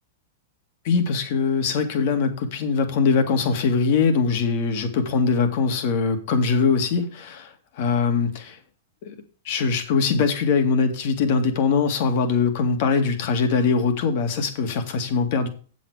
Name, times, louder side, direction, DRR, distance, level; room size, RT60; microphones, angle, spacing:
voice 1, 0.8-8.6 9.0-9.1 9.5-15.5, left 5 dB, 60° left, 7 dB, 2.1 m, -22 dB
7.9 x 7.3 x 4.9 m, 0.40 s
hypercardioid pair, 125°, 0 cm